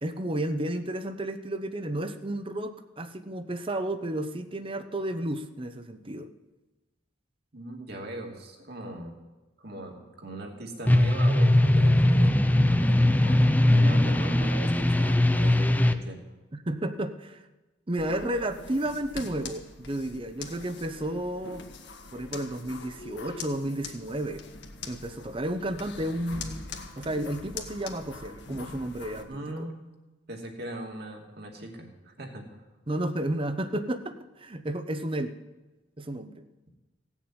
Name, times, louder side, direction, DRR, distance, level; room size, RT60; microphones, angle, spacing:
voice 1, 0.0-6.3 16.7-17.4 17.9-21.6 22.1-24.4 24.9-26.7 27.0-29.7 32.9-35.4 36.0-36.4, right 1 dB, 30° right, 11 dB, 0.8 m, -32 dB
voice 2, 7.5-9.1 9.6-16.2 29.3-29.8 30.3-32.5, right 1 dB, 60° right, 1 dB, 2.5 m, -40 dB
sound 1, 10.9-15.9, left 1 dB, 10° left, 0.6 m, -20 dB
sound 2, 18.0-29.2, left 4 dB, 65° left, 1.6 m, -43 dB
16.5 x 7.3 x 8.9 m, 1.1 s
head